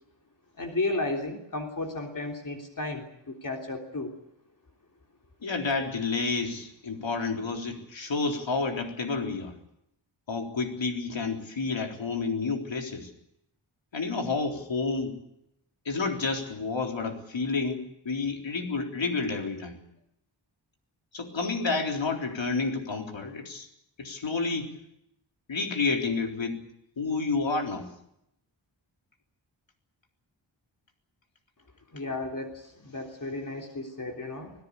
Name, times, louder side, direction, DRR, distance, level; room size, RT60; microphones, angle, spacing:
voice 1, 0.6-4.1 31.9-34.5, left 2 dB, 45° left, 2 dB, 3.4 m, -33 dB
voice 2, 5.4-9.5 10.3-13.1 13.9-15.2 15.9-19.8 21.1-23.7 24.0-24.7 25.5-26.6 27.0-27.9, left 4 dB, 70° left, 3 dB, 3.9 m, -30 dB
26.0 x 17.5 x 8.4 m, 0.79 s
wide cardioid pair, 120°, 46 cm